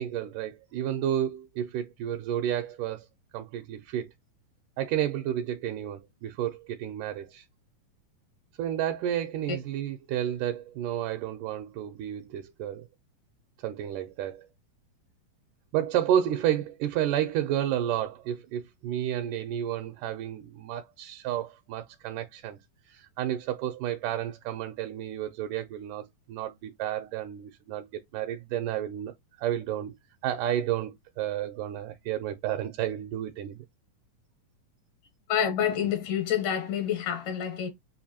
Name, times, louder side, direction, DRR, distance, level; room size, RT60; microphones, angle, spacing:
voice 1, 0.0-3.1 3.3-4.1 4.8-7.4 8.6-12.9 13.6-14.5 15.7-22.6 22.9-29.1 29.4-29.9 30.2-33.7, right 11 dB, 80° right, 2.1 m, -31 dB
voice 2, 35.3-37.7, left 9 dB, 75° left, 2.6 m, -28 dB
7.2 x 2.6 x 2.7 m
omnidirectional pair, 3.8 m